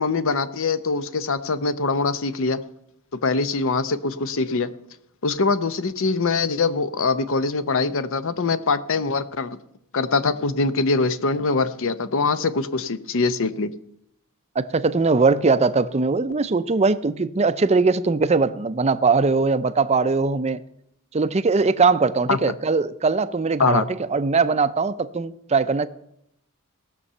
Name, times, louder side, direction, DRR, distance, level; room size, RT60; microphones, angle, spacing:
voice 1, 0.0-2.6 3.2-4.7 5.2-9.6 9.9-13.7 22.3-22.4 23.6-23.9, left 4 dB, 60° left, 0.7 m, -23 dB
voice 2, 14.6-20.6 21.1-25.9, right 4 dB, 30° right, 0.5 m, -20 dB
18.0 x 6.9 x 5.5 m
head